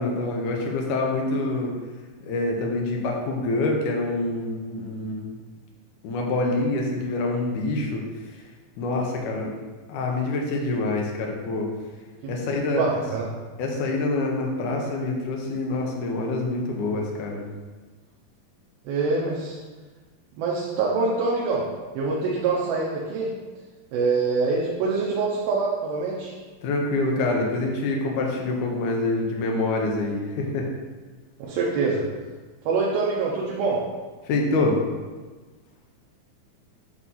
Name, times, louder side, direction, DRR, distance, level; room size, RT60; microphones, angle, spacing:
voice 1, 0.0-1.8 2.2-5.4 6.0-8.1 8.3-8.4 8.8-9.5 9.9-11.7 12.3-13.0 13.6-17.5 26.6-30.7 34.3-34.8, left 2 dB, 70° left, 0 dB, 2.2 m, -26 dB
voice 2, 12.7-13.3 18.9-19.6 20.4-21.6 21.9-23.3 23.9-26.3 31.5-32.1 32.7-33.8, right 4 dB, 90° right, -4 dB, 2.7 m, -25 dB
8.4 x 3.0 x 5.4 m, 1.3 s
omnidirectional pair, 4.1 m